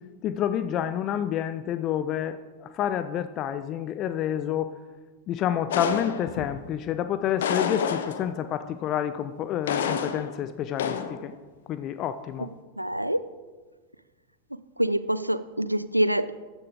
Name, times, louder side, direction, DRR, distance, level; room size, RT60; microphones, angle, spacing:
voice 1, 0.2-4.7 5.3-11.3 11.7-12.5, left 10 dB, 35° left, 12 dB, 0.5 m, -29 dB
sound 1, 5.7-6.6 7.4-8.5 9.7-10.4 10.8-11.2, left 7 dB, 60° left, 0.9 m, -29 dB
voice 2, 12.8-13.2 14.8-16.3, right 1 dB, 90° right, 14 dB, 0.4 m, -25 dB
14.5 x 10.0 x 3.7 m, 1.4 s
figure-of-eight pair, 90°, 0 cm